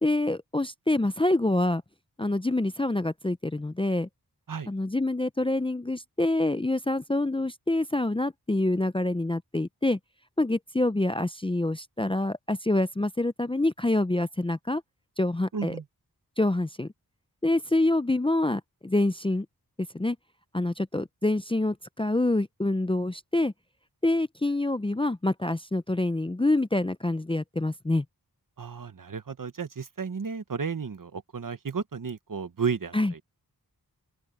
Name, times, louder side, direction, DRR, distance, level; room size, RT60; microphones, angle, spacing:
voice 1, 0.0-1.8 2.2-4.1 4.7-10.0 10.4-14.8 15.2-15.8 16.4-16.9 17.4-19.5 19.9-20.2 20.5-23.5 24.0-28.0 32.9-33.1, left 2 dB, 15° left, 0.5 m, -26 dB
voice 2, 15.5-15.8 28.6-33.2, right 5 dB, 60° right, 1.1 m, -33 dB
open air
wide cardioid pair, 85°, 38 cm